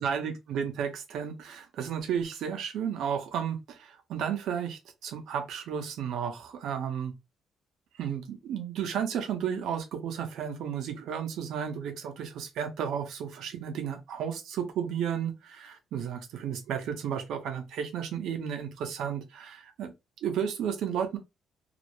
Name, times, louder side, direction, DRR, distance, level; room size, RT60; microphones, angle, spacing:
voice 1, 0.0-7.1 8.0-19.9 20.2-21.2, right 8 dB, 80° right, 0.6 m, -33 dB
2.3 x 2.0 x 2.9 m
cardioid pair, 90°, 0 cm